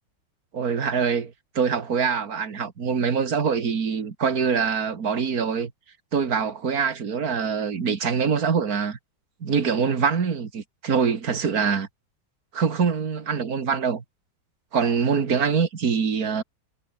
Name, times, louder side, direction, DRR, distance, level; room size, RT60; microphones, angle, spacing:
voice 1, 0.5-5.7 6.1-9.0 9.4-11.9 12.5-14.0 14.7-16.4, right 6 dB, 45° right, 2.4 m, -24 dB
omnidirectional pair, 2.2 m